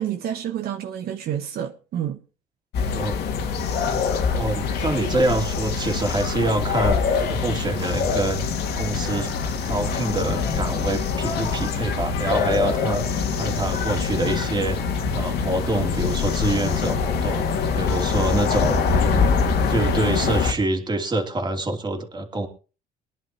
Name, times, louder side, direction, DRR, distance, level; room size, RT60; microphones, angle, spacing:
voice 1, 0.0-2.2, right 10 dB, 65° right, 1.4 m, -29 dB
sound 1, 2.7-20.5, left 5 dB, 75° left, 2.3 m, -24 dB
voice 2, 4.3-8.4 8.8-9.3 9.6-14.8 15.1-17.4 17.8-19.3 19.7-22.5, right 2 dB, 25° right, 2.9 m, -26 dB
23.5 x 10.5 x 3.1 m
cardioid pair, 110°, 17 cm